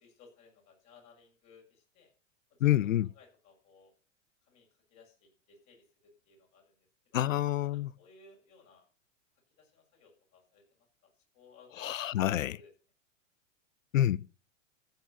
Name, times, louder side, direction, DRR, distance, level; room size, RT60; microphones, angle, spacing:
voice 1, 0.0-2.1 2.5-2.9 3.1-3.9 4.5-6.7 7.1-7.2 7.6-8.8 9.6-11.9 12.5-12.7, left 4 dB, 45° left, 6.8 m, -60 dB
voice 2, 2.6-3.1 7.1-7.9 11.8-12.6 13.9-14.3, left 13 dB, 85° left, 0.5 m, -27 dB
14.5 x 6.6 x 6.7 m
hypercardioid pair, 105°, 38 cm